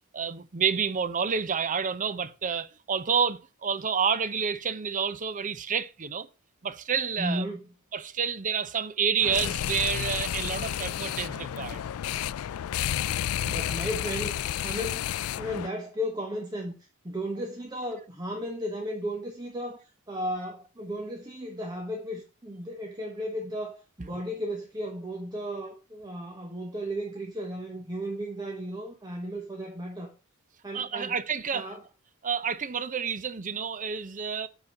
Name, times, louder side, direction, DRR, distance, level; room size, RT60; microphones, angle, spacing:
voice 1, 0.1-6.3 6.6-7.5 7.9-11.9 30.7-31.7 32.2-34.5, right 6 dB, 35° right, 0.6 m, -29 dB
voice 2, 7.2-7.7 13.4-15.0 15.3-16.7 17.0-30.1 30.6-31.2 31.5-31.8, equal, 20° right, 1.1 m, -35 dB
sound 1, 9.2-15.7, left 11 dB, 75° left, 0.3 m, -31 dB
9.8 x 4.2 x 5.3 m
head